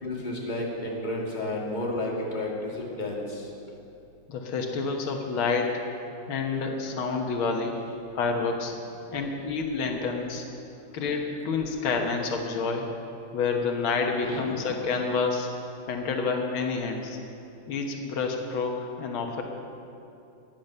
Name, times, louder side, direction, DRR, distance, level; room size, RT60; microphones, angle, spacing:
voice 1, 0.0-3.5 14.2-14.8, left 1 dB, 20° left, -3 dB, 2.3 m, -32 dB
voice 2, 4.3-5.8 6.3-7.8 8.1-8.7 9.1-10.5 10.9-12.9 13.3-15.5 15.9-17.2 17.7-19.4, left 4 dB, 85° left, 2 dB, 2.1 m, -28 dB
14.5 x 10.5 x 6.7 m, 2.7 s
omnidirectional pair, 2.2 m